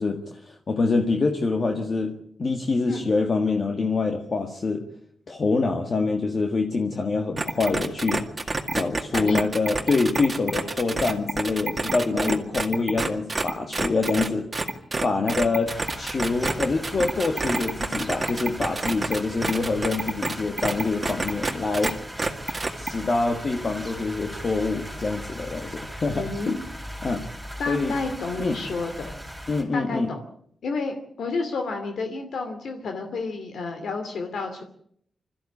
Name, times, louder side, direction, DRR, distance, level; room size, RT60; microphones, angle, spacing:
voice 1, 0.0-4.9 5.3-8.3 8.7-14.5 15.0-22.0 22.7-26.6 27.0-27.3 27.7-28.0 28.4-28.6 29.5-30.1, left 3 dB, 35° left, 3 dB, 1.7 m, -25 dB
sound 1, 7.4-21.9 22.2-22.9, right 3 dB, 20° right, 2.0 m, -27 dB
voice 2, 9.1-9.5 12.1-12.4 26.1-26.6 27.6-29.1 29.7-30.2 30.6-34.6, left 3 dB, 75° left, 5 dB, 2.7 m, -30 dB
sound 2, 15.7-29.6, equal, 5° right, 5.2 m, -39 dB
27.0 x 14.0 x 8.5 m, 0.68 s
wide cardioid pair, 170°, 0 cm